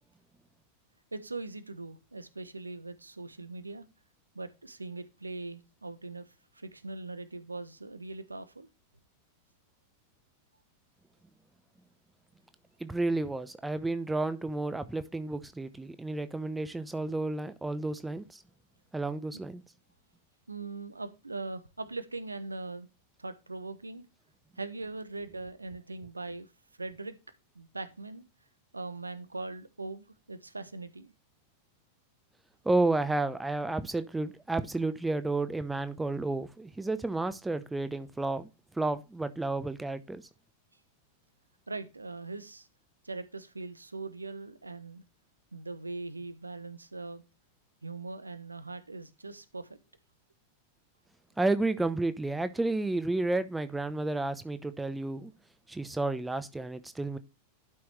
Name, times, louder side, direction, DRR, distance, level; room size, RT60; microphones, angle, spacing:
voice 1, 1.1-3.8 4.3-6.3 6.5-8.7 20.5-22.9 23.2-24.0 24.6-26.5 26.8-27.1 27.5-28.2 28.7-31.1 41.7-42.7 43.0-45.0 45.5-47.2 47.8-49.7, right 3 dB, 80° right, 1.0 m, -41 dB
voice 2, 12.8-18.4 18.9-19.6 32.6-38.5 38.8-40.2 51.4-55.3 55.7-57.2, right 2 dB, 5° right, 0.8 m, -31 dB
12.0 x 6.1 x 3.2 m
figure-of-eight pair, 90°, 0 cm